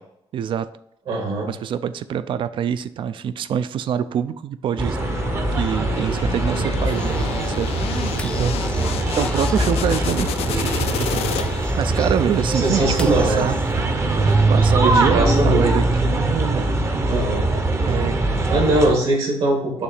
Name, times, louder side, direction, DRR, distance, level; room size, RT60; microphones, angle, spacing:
voice 1, 0.3-0.7 1.5-5.0 5.5-8.6 9.2-11.3 11.8-13.6 14.2-16.7 17.8-18.2, right 8 dB, 55° right, 14 dB, 0.4 m, -25 dB
voice 2, 1.1-1.5 12.5-13.5 14.8-15.7 17.0-17.5 18.4-19.8, right 2 dB, 70° right, -1 dB, 2.3 m, -21 dB
sound 1, 4.8-18.9, right 2 dB, 25° right, 0.7 m, -22 dB
sound 2, 5.0-11.8, left 10 dB, 75° left, 0.4 m, -31 dB
sound 3, 6.8-13.8, left 2 dB, 10° left, 0.4 m, -35 dB
6.8 x 2.8 x 5.0 m, 0.76 s
cardioid pair, 130°, 10 cm